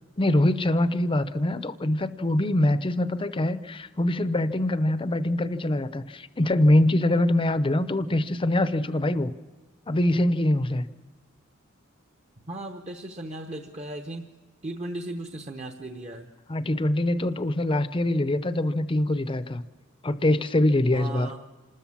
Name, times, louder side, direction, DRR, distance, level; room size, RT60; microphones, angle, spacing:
voice 1, 0.2-9.3 9.9-10.9 16.5-19.6 20.0-21.4, left 1 dB, 25° left, 12 dB, 0.7 m, -24 dB
voice 2, 12.5-14.3 14.6-16.3 20.9-21.4, right 1 dB, 30° right, 4 dB, 0.9 m, -36 dB
27.0 x 13.0 x 7.3 m, 1.3 s
head